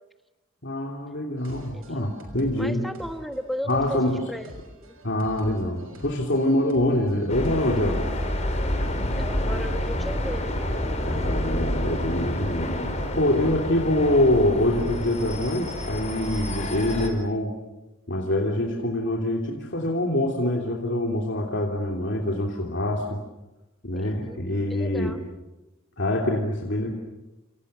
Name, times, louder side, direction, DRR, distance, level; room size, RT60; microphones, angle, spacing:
voice 1, 0.6-2.9 3.7-4.2 5.0-8.0 11.0-17.5 18.1-23.2 23.8-25.1 26.0-26.9, left 1 dB, 55° left, 0 dB, 3.2 m, -25 dB
sound 1, 1.4-8.0, right 1 dB, 70° right, 6.4 m, -46 dB
voice 2, 1.7-2.1 2.6-4.0 4.3-4.5 4.8-5.0 9.2-10.5 23.9-24.4 24.7-25.2, equal, ahead, 6 dB, 1.3 m, -35 dB
sound 2, 7.3-17.1, left 1 dB, 30° left, 4.6 m, -28 dB
28.5 x 28.0 x 6.9 m, 1.0 s
head